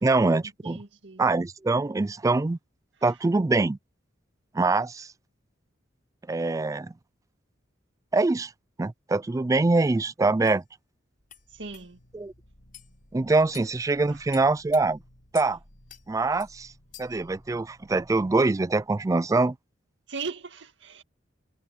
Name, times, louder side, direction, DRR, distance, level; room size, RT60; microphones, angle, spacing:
voice 1, 0.0-0.8 1.2-2.6 3.0-3.8 4.5-5.1 6.3-6.9 8.1-8.5 8.8-10.6 12.1-12.3 13.1-15.0 15.3-15.6 16.1-16.7 17.0-19.5, right 3 dB, 15° right, 0.3 m, -24 dB
voice 2, 0.6-1.3 11.5-12.0 14.1-14.2 20.1-21.0, right 4 dB, 65° right, 2.1 m, -38 dB
metal-multi-hits, 9.8-9.9 10.5-10.6 11.3-11.4 11.7-11.9 12.7-12.9 13.5-13.7 14.3-14.8 15.3-15.5 15.9-16.0 16.4-16.5 16.9-17.2, left 11 dB, 45° left, 5.7 m, -47 dB
sound 1, 11.2-19.0, equal, 70° left, 6.0 m, -57 dB
head